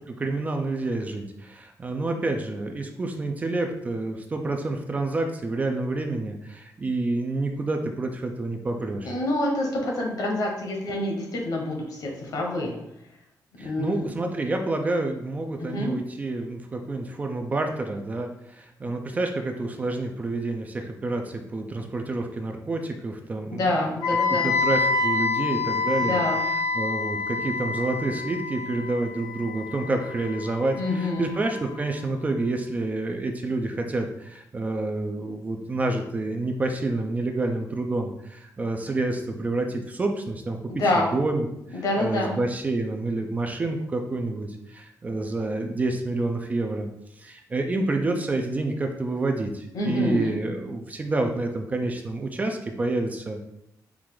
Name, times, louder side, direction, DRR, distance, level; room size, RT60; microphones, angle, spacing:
voice 1, 0.1-9.1 13.6-23.8 24.3-40.8 41.1-46.9 47.2-53.5, right 2 dB, 20° right, 4 dB, 0.3 m, -28 dB
voice 2, 9.0-12.8 13.6-14.0 15.6-16.0 23.5-24.5 26.0-26.4 30.7-31.3 40.8-41.1 41.7-42.3 49.7-50.3, left 1 dB, 65° left, 0 dB, 1.0 m, -27 dB
Wind instrument woodwind instrument, 24.0-31.9, left 4 dB, 90° left, 1.2 m, -28 dB
4.6 x 2.5 x 3.7 m, 0.80 s
wide cardioid pair, 175°, 7 cm